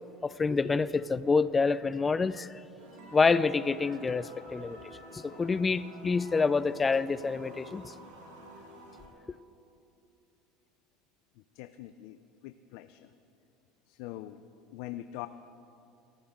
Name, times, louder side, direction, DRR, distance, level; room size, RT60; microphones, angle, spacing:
voice 1, 0.2-2.6 3.1-4.8 5.1-7.9, left 4 dB, 20° left, 16 dB, 0.4 m, -27 dB
sound 1, 2.8-9.1, equal, 80° right, 4.7 m, -49 dB
voice 2, 11.6-12.2 12.4-13.0 14.0-14.4 14.7-15.3, left 15 dB, 70° left, 10 dB, 0.5 m, -42 dB
24.5 x 14.5 x 3.8 m, 2.6 s
supercardioid pair, 120°, 0 cm